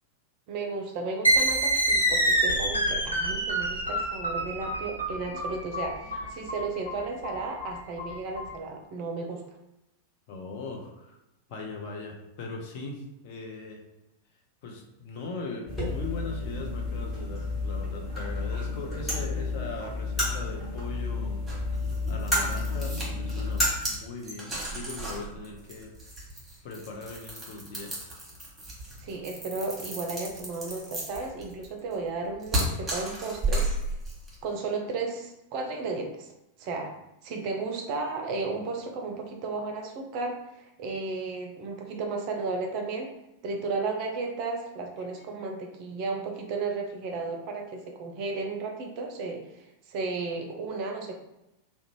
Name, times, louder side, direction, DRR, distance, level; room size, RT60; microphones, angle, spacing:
voice 1, 0.5-9.6 29.0-33.9 34.4-36.3 36.6-36.9 37.2-43.1 43.4-51.2, right 3 dB, 45° right, 2 dB, 0.5 m, -34 dB
sound 1, 1.2-8.5, right 1 dB, 90° left, 0.6 m, -26 dB
voice 2, 6.0-6.5 10.3-11.2 11.5-13.8 14.6-21.7 22.1-25.9 26.6-28.1 45.0-45.1 45.4-45.5, left 3 dB, 45° left, 1 dB, 0.5 m, -40 dB
sound 2, 15.7-23.7, left 2 dB, 20° left, 1.2 m, -30 dB
sound 3, 21.5-34.4, right 1 dB, 10° right, 1.1 m, -34 dB
2.5 x 2.1 x 3.0 m, 0.90 s
figure-of-eight pair, 90°, 0 cm